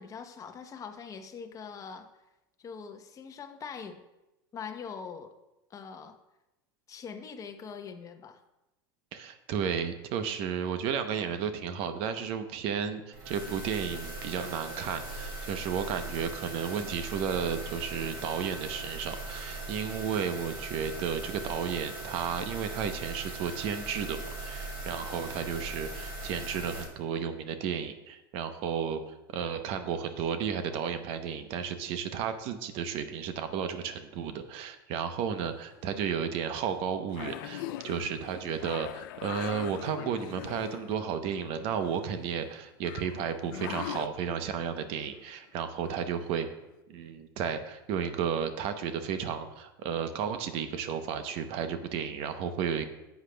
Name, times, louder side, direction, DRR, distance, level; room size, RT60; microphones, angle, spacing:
voice 1, 0.0-2.1 2.6-4.0 4.5-5.3 5.7-6.2 6.9-8.4, left 6 dB, 30° left, 6 dB, 0.9 m, -42 dB
voice 2, 9.1-46.5 46.9-52.8, right 7 dB, 55° right, 9 dB, 0.8 m, -33 dB
sound 1, 13.1-26.8, right 2 dB, 80° right, 3.3 m, -40 dB
sound 2, 35.4-35.8 36.6-36.7 37.1-40.9 41.3-42.5 42.8-44.1 45.9-46.0 46.4-46.5, left 14 dB, 70° left, 0.4 m, -41 dB
11.5 x 8.1 x 2.3 m, 0.98 s
hypercardioid pair, 110°, 12 cm